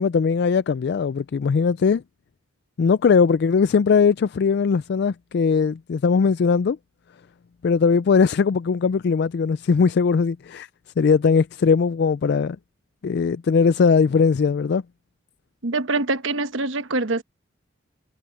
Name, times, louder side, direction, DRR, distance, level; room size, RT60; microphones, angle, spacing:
voice 1, 0.0-2.0 2.8-6.8 7.6-10.7 11.0-12.6 13.0-14.8, left 5 dB, 60° left, 0.3 m, -19 dB
voice 2, 15.6-17.2, right 3 dB, 80° right, 1.2 m, -24 dB
head